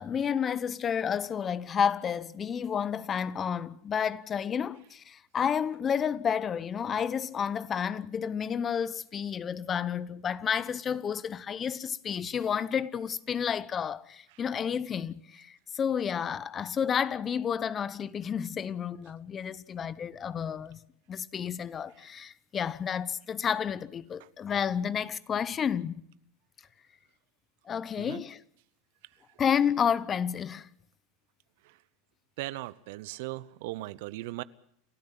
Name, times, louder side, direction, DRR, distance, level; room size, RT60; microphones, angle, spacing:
voice 1, 0.0-20.8 21.1-26.0 27.7-28.4 29.4-30.7, left 7 dB, 30° left, 1.0 m, -31 dB
voice 2, 32.4-34.4, right 18 dB, 65° right, 0.8 m, -38 dB
29.0 x 13.0 x 7.7 m
hypercardioid pair, 95°, 0 cm